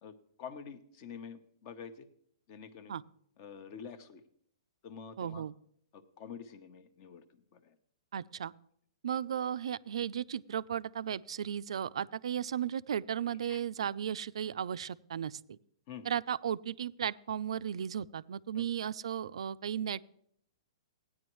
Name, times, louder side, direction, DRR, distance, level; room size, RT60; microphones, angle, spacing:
voice 1, 0.0-2.1 2.5-3.0 3.4-4.2 4.8-5.4 5.9-7.7 13.5-13.6 15.9-16.2 18.5-18.6, left 6 dB, 40° left, 11 dB, 0.9 m, -48 dB
voice 2, 5.2-5.5 8.1-8.5 9.0-15.6 16.1-20.0, right 9 dB, 80° right, 17 dB, 0.3 m, -35 dB
15.5 x 9.8 x 3.1 m, 0.69 s
hypercardioid pair, 150°, 3 cm